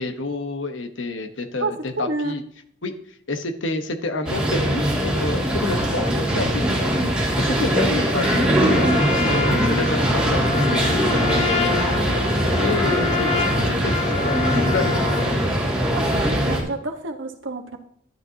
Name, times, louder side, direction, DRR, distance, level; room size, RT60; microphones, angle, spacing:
voice 1, 0.0-2.4 2.8-2.9 3.3-11.8 12.6-15.1 15.9-16.4, left 2 dB, 80° left, 7 dB, 1.2 m, -29 dB
voice 2, 1.6-2.4 7.6-8.0 12.6-12.7 15.9-16.0 16.3-17.8, right 3 dB, 85° right, 4 dB, 1.4 m, -30 dB
sound 1, 4.2-16.6, equal, 5° right, 2.5 m, -21 dB
Trumpet, 8.1-15.4, left 6 dB, 35° left, 1.0 m, -28 dB
12.0 x 10.5 x 2.9 m, 0.64 s
head